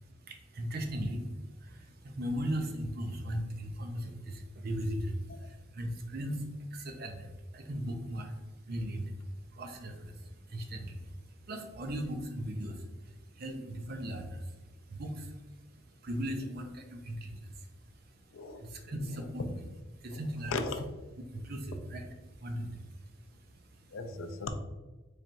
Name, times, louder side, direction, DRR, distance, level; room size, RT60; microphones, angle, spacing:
voice 1, 0.2-8.4 8.7-15.5 15.8-19.4 19.9-20.6 21.3-24.0, equal, 50° right, 4 dB, 0.5 m, -38 dB
voice 2, 20.5-20.8 23.9-24.5, left 4 dB, 80° left, 7 dB, 0.4 m, -36 dB
4.2 x 3.2 x 2.6 m, 1.2 s
head